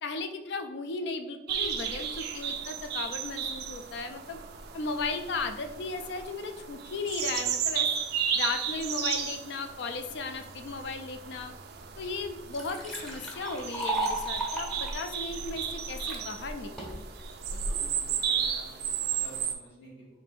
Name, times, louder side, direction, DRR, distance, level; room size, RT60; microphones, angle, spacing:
voice 1, 0.0-4.4 4.7-7.9 8.3-11.5 12.0-17.0, left 3 dB, 60° left, 8 dB, 0.4 m, -36 dB
sound 1, 1.5-19.5, right 7 dB, 55° right, 0.3 m, -34 dB
Liquid, 11.7-11.8 12.2-16.2 16.8-17.3, right 2 dB, ahead, 0.6 m, -35 dB
voice 2, 17.5-20.1, equal, 80° left, -10 dB, 1.1 m, -50 dB
3.1 x 2.6 x 4.3 m, 1.1 s
head